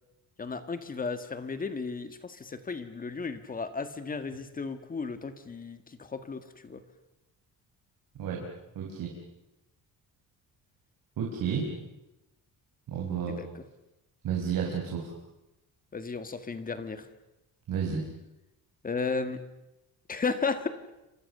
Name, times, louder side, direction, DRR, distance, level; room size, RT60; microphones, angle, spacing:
voice 1, 0.4-6.8 13.3-13.6 15.9-17.1 18.8-19.4 20.1-20.7, left 4 dB, 25° left, 10 dB, 1.7 m, -34 dB
voice 2, 8.8-9.1 11.2-11.7 12.9-13.4 14.2-15.1 17.7-18.0, right 7 dB, 65° right, -1 dB, 5.3 m, -31 dB
29.0 x 25.5 x 6.8 m, 0.95 s
cardioid pair, 165°, 35 cm